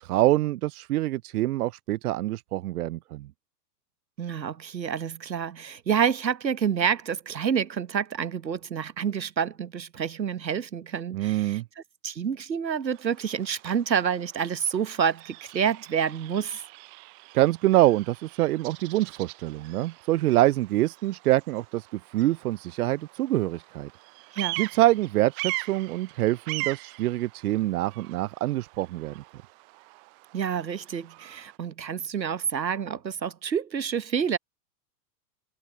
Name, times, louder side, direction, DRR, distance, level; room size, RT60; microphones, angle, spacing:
voice 1, 0.0-3.3 11.1-11.6 17.3-23.9 24.6-29.2, right 16 dB, 60° right, 0.7 m, -25 dB
voice 2, 4.2-16.6 24.3-24.6 30.3-34.4, right 7 dB, 85° right, 1.1 m, -28 dB
Bird vocalization bird call bird song, 12.8-31.6, right 34 dB, 25° right, 0.4 m, -41 dB
figure-of-eight pair, 95°, 50 cm